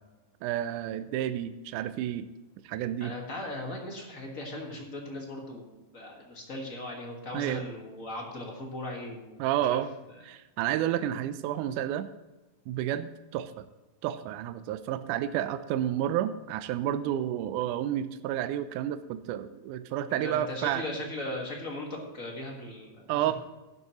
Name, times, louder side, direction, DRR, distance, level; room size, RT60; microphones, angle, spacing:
voice 1, 0.4-2.3 2.7-3.1 7.3-7.6 9.4-9.9 10.2-12.1 12.7-13.7 14.0-20.9 23.1-23.3, right 11 dB, 80° right, 12 dB, 2.0 m, -30 dB
voice 2, 3.0-9.4 9.7-9.8 20.2-23.3, left 1 dB, 35° left, 0 dB, 1.5 m, -38 dB
12.0 x 11.0 x 3.0 m, 1.1 s
omnidirectional pair, 3.6 m